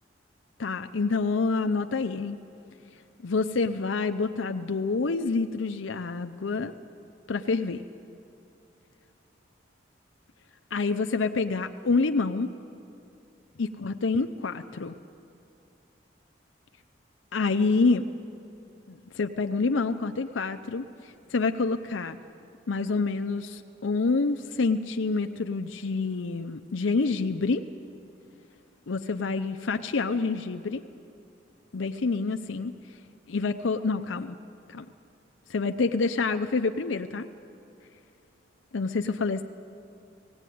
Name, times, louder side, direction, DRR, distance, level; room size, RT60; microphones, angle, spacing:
voice 1, 0.6-2.4 3.2-6.7 7.3-7.8 10.7-12.5 13.6-14.9 17.3-18.1 18.9-22.2 22.7-27.6 28.9-30.8 31.7-32.7 33.3-34.4 34.7-34.8 35.5-37.3 38.7-39.4, left 4 dB, 90° left, 8 dB, 0.6 m, -27 dB
17.5 x 17.0 x 9.3 m, 2.6 s
head